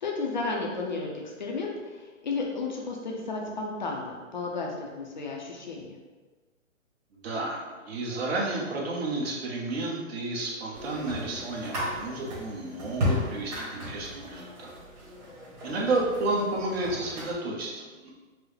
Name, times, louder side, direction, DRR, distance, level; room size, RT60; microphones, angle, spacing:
voice 1, 0.0-1.7 2.2-6.0, left 3 dB, 40° left, -1 dB, 0.4 m, -33 dB
voice 2, 7.2-14.7 15.6-18.1, right 2 dB, 50° right, -3 dB, 1.0 m, -31 dB
sound 1, 10.7-17.3, left 1 dB, 30° right, 1.5 m, -35 dB
4.6 x 2.0 x 3.2 m, 1.3 s
hypercardioid pair, 150°, 39 cm